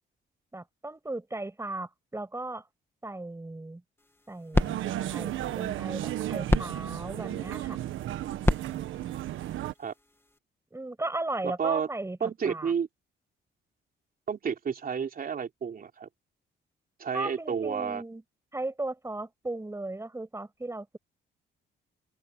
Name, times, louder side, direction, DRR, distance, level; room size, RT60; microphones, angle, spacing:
voice 1, 0.5-2.7 3.0-3.8 4.3-4.8 5.1-7.8 10.7-12.7 17.1-18.2 18.5-21.0, right 2 dB, 15° right, 6.5 m, -36 dB
sound 1, 4.0-10.4, left 2 dB, 10° left, 2.5 m, -33 dB
sound 2, 4.5-9.7, right 13 dB, 80° right, 1.3 m, -34 dB
voice 2, 11.4-11.9 12.2-12.9 14.3-16.1 17.0-18.0, right 7 dB, 45° right, 3.5 m, -31 dB
open air
cardioid pair, 90°, 20 cm